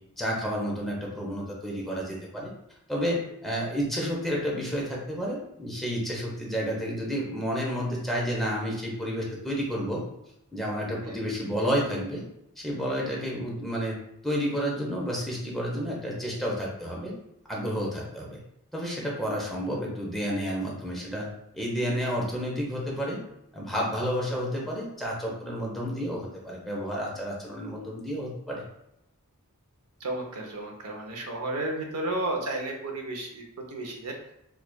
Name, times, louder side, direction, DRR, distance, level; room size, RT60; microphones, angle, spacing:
voice 1, 0.2-2.5 2.9-10.0 10.5-12.2 12.6-13.9 14.2-17.1 17.5-18.4 18.7-21.3 21.5-23.2 23.5-28.6, equal, ahead, -4 dB, 0.7 m, -30 dB
voice 2, 30.0-34.3, right 2 dB, 90° right, 1 dB, 0.7 m, -33 dB
4.6 x 2.4 x 2.2 m, 0.82 s
head